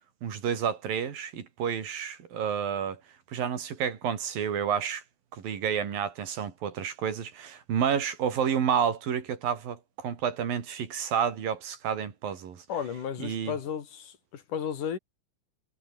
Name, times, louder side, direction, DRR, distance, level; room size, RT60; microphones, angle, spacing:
voice 1, 0.2-3.0 3.3-5.0 5.3-12.6 13.2-13.5, right 8 dB, 85° right, 4.7 m, -30 dB
voice 2, 12.7-15.0, left 8 dB, 65° left, 3.9 m, -34 dB
omnidirectional pair, 3.9 m